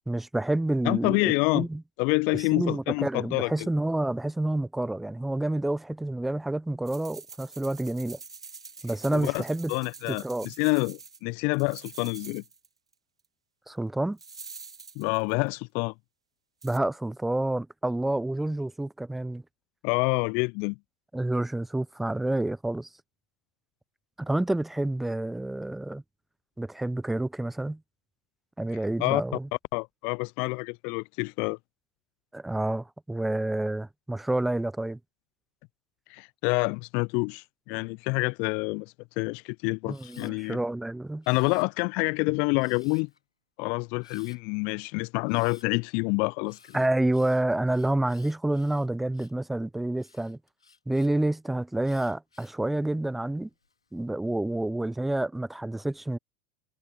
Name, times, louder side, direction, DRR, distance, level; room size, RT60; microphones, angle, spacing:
voice 1, 0.1-1.2 1.5-1.8 2.3-8.2 8.8-9.7 10.1-10.5 13.7-14.2 16.6-19.4 21.1-22.9 24.2-26.0 26.6-27.8 28.6-29.5 32.3-35.0 39.9-41.2 46.7-50.4 50.9-53.5 53.9-56.2, right 1 dB, 5° right, 0.7 m, -28 dB
voice 2, 0.8-1.7 2.0-3.7 9.1-9.4 9.7-12.4 15.0-15.9 19.8-20.8 29.0-29.2 29.7-31.6 36.1-40.6 41.3-43.1 43.6-46.8, left 32 dB, 50° left, 0.3 m, -27 dB
sound 1, 6.9-11.2 11.5-12.7 12.9-13.0 14.2-15.5 16.6-16.8, right 5 dB, 90° right, 1.8 m, -46 dB
Camera, 39.9-40.3 41.2-42.0 42.6-43.2 44.0-44.4 45.3-45.7 46.5-49.4 50.0-51.1 51.8-52.6 53.2-53.7, left 4 dB, 90° left, 2.1 m, -57 dB
figure-of-eight pair, 85°, 3 cm